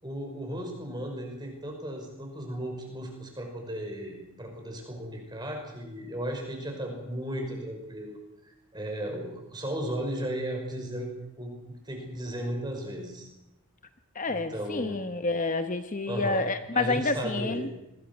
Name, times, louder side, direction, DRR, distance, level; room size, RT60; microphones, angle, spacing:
voice 1, 0.0-8.2 8.4-11.1 11.4-13.3 14.3-15.0 16.1-16.4 16.7-17.7, equal, 20° right, 2 dB, 5.6 m, -35 dB
voice 2, 14.1-17.7, left 3 dB, 35° left, 8 dB, 0.9 m, -29 dB
25.5 x 21.5 x 6.1 m, 0.91 s
head